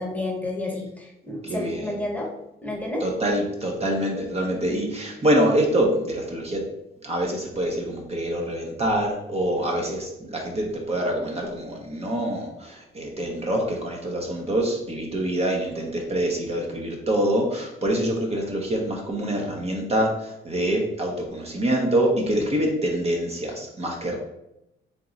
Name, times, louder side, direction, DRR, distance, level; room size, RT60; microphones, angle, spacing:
voice 1, 0.0-2.3 2.6-3.1, left 2 dB, 5° left, 0 dB, 1.0 m, -30 dB
voice 2, 1.4-1.9 3.0-6.6 7.0-24.2, right 1 dB, 30° right, 0 dB, 0.8 m, -25 dB
3.7 x 2.9 x 3.9 m, 0.87 s
cardioid pair, 90°, 20 cm